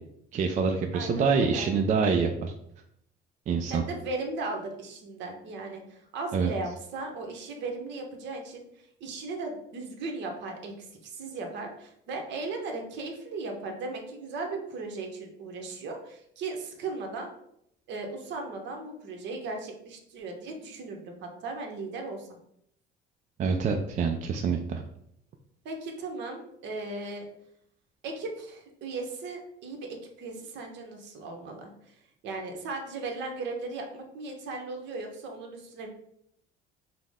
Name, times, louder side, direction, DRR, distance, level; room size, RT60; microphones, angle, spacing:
voice 1, 0.3-2.5 3.5-3.8 6.3-6.5 23.4-24.8, right 5 dB, 40° right, 4 dB, 0.4 m, -26 dB
voice 2, 0.9-1.7 3.7-17.3 17.9-22.3 25.6-27.2 28.0-35.9, right 3 dB, 65° right, 3 dB, 1.0 m, -37 dB
5.7 x 2.1 x 3.5 m, 0.73 s
cardioid pair, 135°, 20 cm